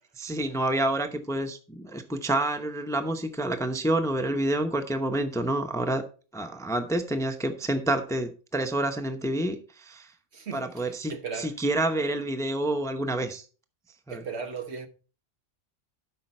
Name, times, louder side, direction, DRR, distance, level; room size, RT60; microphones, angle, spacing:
voice 1, 0.2-6.0 6.3-10.1 10.5-13.4 14.1-14.2, right 1 dB, 5° left, 0.7 m, -28 dB
voice 2, 10.3-11.5 14.1-14.9, right 5 dB, 65° right, 1.3 m, -37 dB
12.0 x 5.7 x 4.3 m
omnidirectional pair, 1.3 m